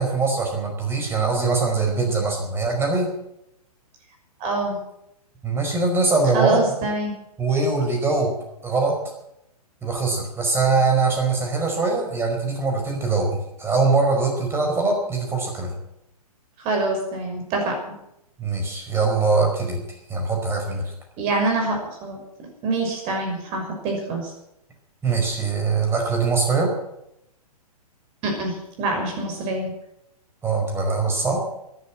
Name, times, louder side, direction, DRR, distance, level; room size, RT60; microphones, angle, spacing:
voice 1, 0.0-3.1 5.4-6.7 7.4-8.3 8.6-9.0 9.8-15.7 18.4-19.8 20.1-20.8 25.0-26.7 30.4-31.4, right 4 dB, 10° right, 2 dB, 4.9 m, -22 dB
voice 2, 4.4-4.8 6.3-7.1 16.6-17.8 21.2-22.2 22.6-24.3 28.2-29.7, right 2 dB, 30° right, 2 dB, 6.1 m, -25 dB
13.5 x 11.5 x 9.0 m, 0.83 s
figure-of-eight pair, 120°, 20 cm